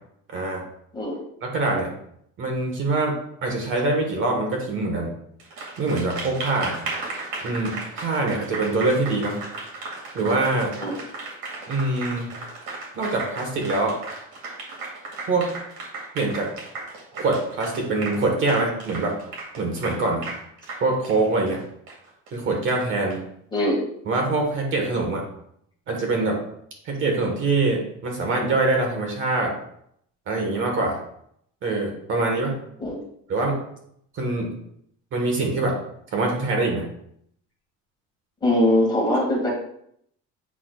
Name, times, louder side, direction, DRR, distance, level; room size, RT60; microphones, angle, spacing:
voice 1, 0.3-0.6 1.4-1.9 2.4-3.1 3.4-5.1 5.8-6.9 7.4-9.4 10.1-10.7 11.7-12.3 12.9-14.0 15.3-15.6 16.1-16.5 17.2-19.1 19.6-20.2 20.8-21.6 22.3-23.2 24.1-25.2 25.9-26.4 26.8-29.5 30.3-31.0 31.6-32.5 33.3-33.6 34.1-34.5 35.1-35.8 36.1-36.8, right 2 dB, 40° right, 1 dB, 1.3 m, -24 dB
Applause, 5.4-23.1, right 3 dB, 70° right, 2.1 m, -35 dB
voice 2, 23.5-23.8 32.8-33.0 38.4-39.5, left 1 dB, 15° left, -4 dB, 1.9 m, -21 dB
8.5 x 5.8 x 2.3 m, 0.70 s
cardioid pair, 170°, 31 cm